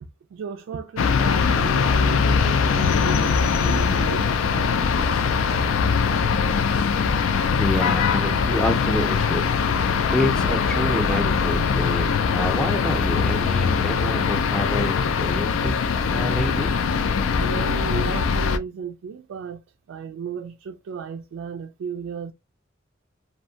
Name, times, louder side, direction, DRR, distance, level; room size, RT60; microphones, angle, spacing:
voice 1, 0.0-6.3 11.6-11.7 17.4-19.6 19.9-22.3, right 6 dB, 80° right, 0.3 m, -35 dB
sound 1, 1.0-18.6, left 5 dB, 80° left, 0.4 m, -21 dB
voice 2, 7.6-9.5 10.1-15.8 16.1-16.8, left 1 dB, 5° left, 0.5 m, -28 dB
sound 2, 8.2-17.7, left 1 dB, 60° left, 0.8 m, -41 dB
2.6 x 2.1 x 2.7 m
head